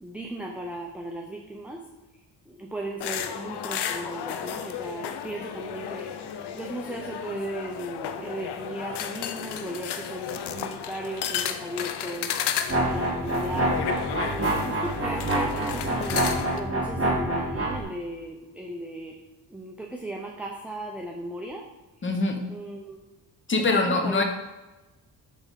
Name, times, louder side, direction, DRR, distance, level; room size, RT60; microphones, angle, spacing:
voice 1, 0.0-1.8 2.5-19.1 19.5-21.7 22.5-23.0 23.7-24.2, right 1 dB, 5° right, 0 dB, 0.5 m, -36 dB
sound 1, 3.0-16.6, left 9 dB, 70° left, 0.6 m, -33 dB
sound 2, 12.7-17.8, right 1 dB, 30° right, 1.8 m, -27 dB
voice 2, 22.0-22.4 23.5-24.2, left 3 dB, 30° left, 4 dB, 1.0 m, -23 dB
7.1 x 3.5 x 5.7 m, 1.1 s
cardioid pair, 120°, 41 cm